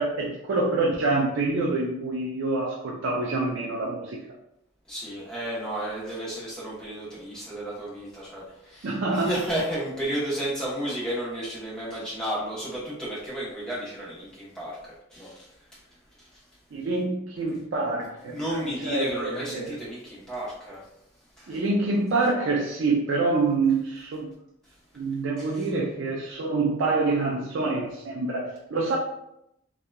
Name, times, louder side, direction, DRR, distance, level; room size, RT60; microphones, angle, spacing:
voice 1, 0.0-4.3 8.8-9.3 16.7-19.7 21.5-24.3 24.9-29.0, right 3 dB, 75° right, -2 dB, 0.4 m, -26 dB
voice 2, 4.9-15.8 16.2-16.4 18.3-20.9 21.4-21.6 25.4-25.7, right 1 dB, 5° left, -8 dB, 0.9 m, -33 dB
2.7 x 2.3 x 2.2 m, 0.81 s
head